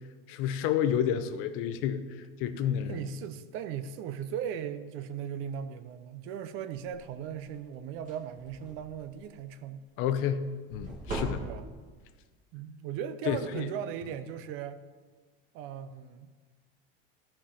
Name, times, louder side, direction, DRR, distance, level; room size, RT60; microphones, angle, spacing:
voice 1, 0.3-3.0 10.0-11.4 13.2-13.7, left 9 dB, 45° left, 11 dB, 0.6 m, -30 dB
voice 2, 2.9-9.8 11.4-11.7 12.5-14.8 15.5-16.3, right 9 dB, 45° right, 11 dB, 0.6 m, -38 dB
sound 1, 6.8-7.1 7.5-7.7 7.9-9.0 10.7-11.9, right 1 dB, 25° right, 1.5 m, -38 dB
12.5 x 4.4 x 5.6 m, 1.4 s
supercardioid pair, 150°, 29 cm